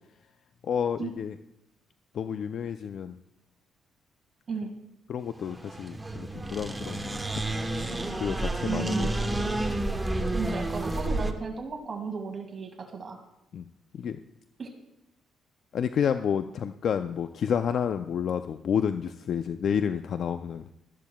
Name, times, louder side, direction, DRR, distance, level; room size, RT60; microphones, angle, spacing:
voice 1, 0.6-1.4 2.1-3.2 5.1-7.4 8.2-9.1 13.5-13.7 14.0-14.2 15.7-20.7, left 7 dB, 60° left, 9 dB, 0.4 m, -30 dB
sound 1, 5.4-11.3, right 2 dB, 15° right, 1.0 m, -30 dB
voice 2, 8.6-9.1 10.3-13.2 14.6-14.7, right 4 dB, 45° right, 3 dB, 1.9 m, -34 dB
17.5 x 13.5 x 2.3 m, 0.84 s
cardioid pair, 90°, 0 cm